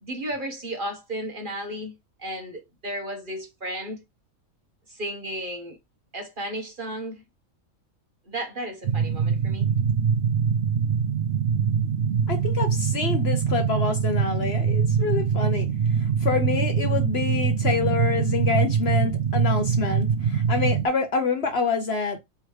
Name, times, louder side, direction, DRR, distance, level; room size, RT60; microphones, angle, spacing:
voice 1, 0.0-1.9 2.2-4.0 4.9-5.8 6.1-7.2 8.3-9.9, right 1 dB, 40° right, 1.0 m, -34 dB
sound 1, 8.8-20.9, right 7 dB, 60° right, 0.7 m, -23 dB
voice 2, 12.3-22.2, left 5 dB, 55° left, 0.9 m, -27 dB
3.6 x 3.1 x 4.7 m
omnidirectional pair, 1.5 m